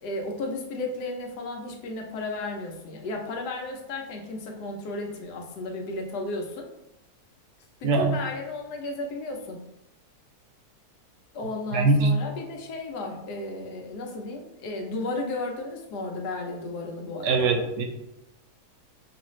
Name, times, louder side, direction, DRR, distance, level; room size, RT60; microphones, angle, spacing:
voice 1, 0.0-6.7 7.8-9.6 11.3-17.6, left 2 dB, 80° left, 2 dB, 1.3 m, -34 dB
voice 2, 11.7-12.1 17.2-17.8, right 3 dB, 75° right, 4 dB, 1.1 m, -22 dB
5.5 x 2.5 x 3.0 m, 0.89 s
omnidirectional pair, 1.7 m